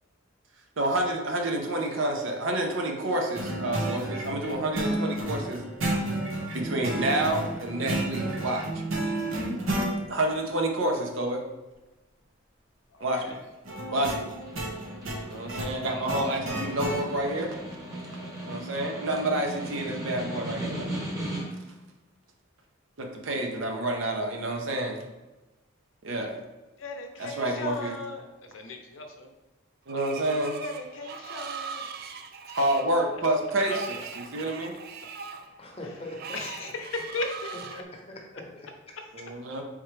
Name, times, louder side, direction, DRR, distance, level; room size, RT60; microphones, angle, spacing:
voice 1, 0.8-5.7 6.5-8.8 10.1-11.4 13.0-13.3 13.9-14.3 15.3-17.6 18.4-20.9 23.0-25.0 26.0-26.4 27.2-27.9 29.9-30.6 32.5-34.7 39.1-39.6, right 1 dB, 70° right, 0.7 m, -29 dB
sound 1, 3.3-9.9 13.7-17.0, right 1 dB, 90° right, 1.0 m, -31 dB
voice 2, 12.9-13.4 18.1-18.4 26.8-29.3 30.6-31.9 32.5-32.6 33.7-33.8 36.3-37.8, left 2 dB, 70° left, 0.6 m, -37 dB
Snare drum, 14.2-21.7, right 1 dB, 20° right, 0.9 m, -37 dB
Screech, 29.9-37.8, right 5 dB, 50° right, 0.3 m, -41 dB
voice 3, 35.4-36.7 37.8-39.0, left 1 dB, 30° left, 0.8 m, -43 dB
4.4 x 3.6 x 3.2 m
head